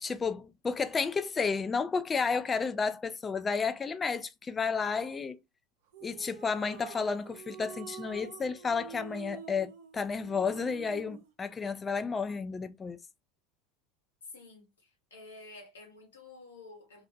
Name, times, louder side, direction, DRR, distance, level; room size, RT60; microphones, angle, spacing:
voice 1, 0.0-5.4 6.0-13.0, left 5 dB, 25° left, 0.4 m, -32 dB
sound 1, 5.9-11.3, right 7 dB, 65° right, 0.6 m, -47 dB
voice 2, 14.3-17.0, left 2 dB, 85° left, 1.0 m, -51 dB
2.6 x 2.1 x 2.4 m
hypercardioid pair, 80°, 0 cm